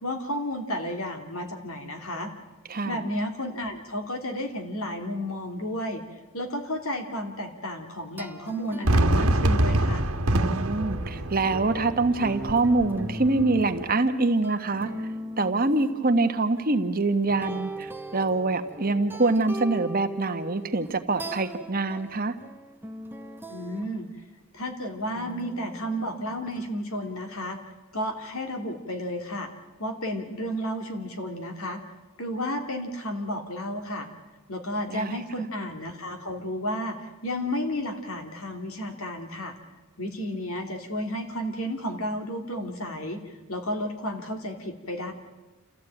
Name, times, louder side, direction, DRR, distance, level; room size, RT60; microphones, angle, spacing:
voice 1, 0.0-2.3 2.8-6.0 6.3-10.0 23.5-24.1 24.5-27.6 27.9-29.5 29.8-31.8 32.2-34.1 34.5-39.6 40.0-43.2 43.5-45.1, equal, 80° left, 5 dB, 3.0 m, -32 dB
sound 1, 8.2-16.6 17.3-24.1 25.0-26.7, right 1 dB, 10° right, 0.9 m, -40 dB
Fireworks, 8.9-13.9, right 1 dB, 85° right, 1.4 m, -25 dB
voice 2, 10.3-14.9 15.4-22.4 34.9-35.2, right 3 dB, 45° right, 8 dB, 1.3 m, -25 dB
28.0 x 14.5 x 9.0 m, 1.2 s
head